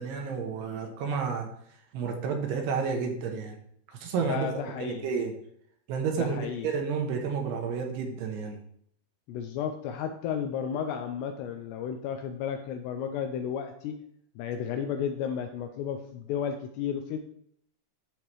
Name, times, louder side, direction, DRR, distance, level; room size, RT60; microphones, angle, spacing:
voice 1, 0.0-1.5 1.9-3.5 3.9-4.5 4.8-5.3 5.9-6.4 6.6-8.6, right 6 dB, 75° right, 2 dB, 2.7 m, -30 dB
voice 2, 4.2-5.1 6.1-6.7 9.3-14.0 14.4-17.2, left 8 dB, 85° left, 6 dB, 2.5 m, -33 dB
13.5 x 4.9 x 3.1 m, 0.69 s
omnidirectional pair, 5.3 m